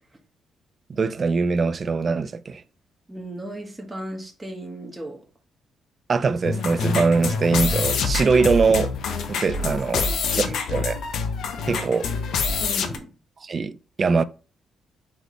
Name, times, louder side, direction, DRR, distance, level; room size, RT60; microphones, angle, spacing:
voice 1, 0.9-2.6 6.1-8.9 9.3-10.0 10.3-11.0 11.7-12.1 13.4-14.2, right 4 dB, 40° right, 0.3 m, -22 dB
voice 2, 3.1-5.2 9.6-10.6 11.6-11.9 12.6-13.1, right 1 dB, 10° right, 1.1 m, -36 dB
sound 1, 6.4-13.0, left 4 dB, 75° left, 0.7 m, -26 dB
4.1 x 3.2 x 3.0 m
cardioid pair, 90°, 0 cm